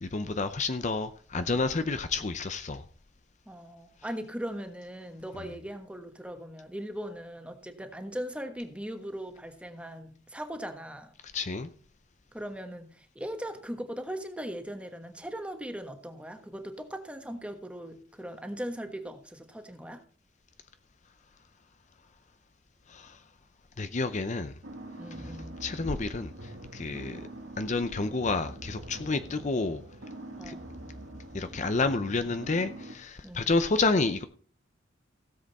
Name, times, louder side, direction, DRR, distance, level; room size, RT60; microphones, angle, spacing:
voice 1, 0.0-2.8 11.3-11.7 22.9-23.2 23.8-24.5 25.2-25.3 25.6-27.3 27.6-29.8 30.4-30.5 31.3-34.2, left 3 dB, 40° left, 0.6 m, -29 dB
voice 2, 3.5-11.1 12.3-20.0 25.0-25.5 30.3-30.7 33.2-33.5, equal, 5° right, 1.3 m, -39 dB
sound 1, 24.6-33.0, right 1 dB, 75° right, 2.0 m, -44 dB
16.5 x 7.6 x 4.2 m
head